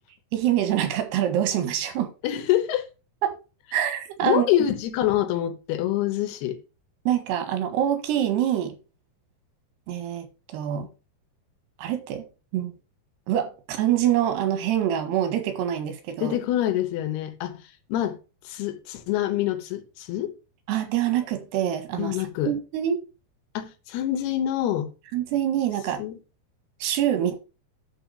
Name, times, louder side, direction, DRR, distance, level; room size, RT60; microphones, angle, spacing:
voice 1, 0.3-2.1 3.2-3.3 3.7-4.5 7.1-8.8 9.9-10.3 10.5-10.9 11.8-12.3 12.5-12.7 13.3-16.4 20.7-22.2 22.5-23.0 25.1-26.0 26.8-27.4, right 11 dB, 85° right, 3.7 m, -25 dB
voice 2, 2.2-2.9 4.2-6.6 16.2-18.2 18.4-20.3 21.9-22.5 23.5-24.9 26.0-26.2, left 12 dB, 80° left, 3.2 m, -26 dB
11.0 x 4.1 x 7.1 m
omnidirectional pair, 4.6 m